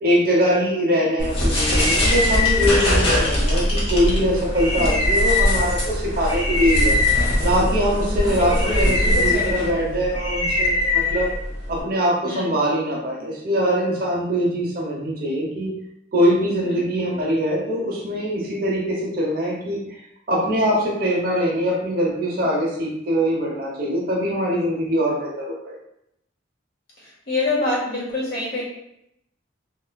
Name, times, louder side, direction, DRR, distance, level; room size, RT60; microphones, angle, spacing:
voice 1, 0.0-7.0 7.4-11.3 11.7-15.7 16.1-20.0 20.3-25.7, equal, 50° right, -3 dB, 0.7 m, -22 dB
sound 1, 1.2-11.8, left 1 dB, 30° left, 0.9 m, -21 dB
voice 2, 8.0-9.7 12.2-12.5 16.6-16.7 27.3-28.6, left 2 dB, 60° left, -6 dB, 1.4 m, -26 dB
3.2 x 2.9 x 2.2 m, 0.79 s
head